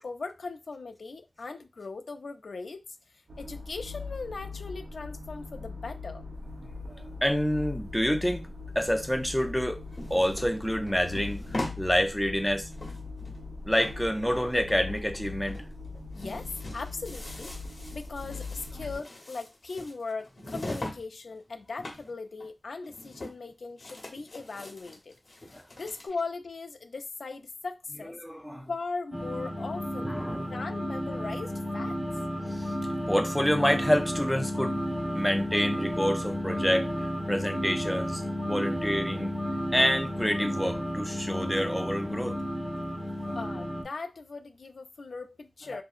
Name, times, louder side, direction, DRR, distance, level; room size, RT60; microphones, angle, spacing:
voice 1, 0.0-2.8 3.4-6.2 16.2-17.5 17.9-25.1 25.5-28.1 28.7-30.1 30.5-32.0 43.4-45.8, left 4 dB, 70° left, 0.4 m, -39 dB
sound 1, 3.3-19.0, left 3 dB, 70° right, 1.0 m, -41 dB
voice 2, 7.2-8.4 8.8-9.8 10.1-12.7 13.6-15.6 25.5-25.6 28.2-28.7 30.0-30.4 32.6-32.7 33.1-34.8 35.1-36.9 37.3-39.3 39.7-42.4 43.2-43.4, equal, ahead, 0.4 m, -27 dB
sound 2, 9.4-11.8 12.2-12.3 12.6-13.5 13.7-15.2 15.5-15.6 15.9-21.0 21.3-22.1 22.4-22.5 22.8-23.5 23.8-26.1, left 1 dB, 45° left, 0.8 m, -41 dB
sound 3, 29.1-43.8, equal, 30° right, 0.7 m, -32 dB
2.8 x 2.5 x 2.4 m
wide cardioid pair, 105°, 0 cm